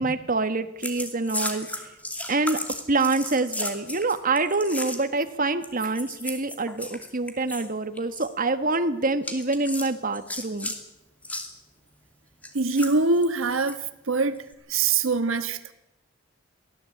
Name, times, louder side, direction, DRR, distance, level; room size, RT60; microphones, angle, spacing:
voice 1, 0.0-1.9 2.3-2.6 2.9-10.7, right 3 dB, 45° right, 1.4 m, -26 dB
sound 1, 0.8-5.2 5.6-7.7 7.9-8.3 9.2-10.8 11.2-11.5 12.4-13.8 14.3-14.5, left 1 dB, 10° left, 2.6 m, -34 dB
voice 2, 12.5-13.8 14.1-14.4 14.7-15.7, right 3 dB, 90° right, 1.4 m, -23 dB
23.5 x 16.5 x 8.5 m
head